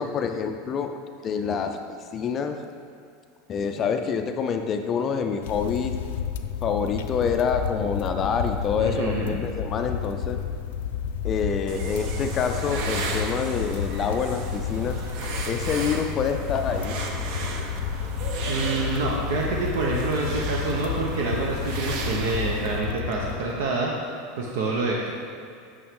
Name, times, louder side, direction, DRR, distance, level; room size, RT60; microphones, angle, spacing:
voice 1, 0.0-2.6 3.5-5.9 6.6-10.4 11.2-15.0 15.5-17.0, left 6 dB, 25° left, 6 dB, 0.4 m, -27 dB
sound 1, 5.4-23.8, left 8 dB, 80° left, 0.4 m, -31 dB
voice 2, 8.7-9.4 18.5-25.1, right 3 dB, 70° right, -2 dB, 0.9 m, -27 dB
sound 2, 11.7-22.8, right 4 dB, 50° right, 0.8 m, -34 dB
8.6 x 6.2 x 3.7 m, 2.4 s
supercardioid pair, 170°, 0 cm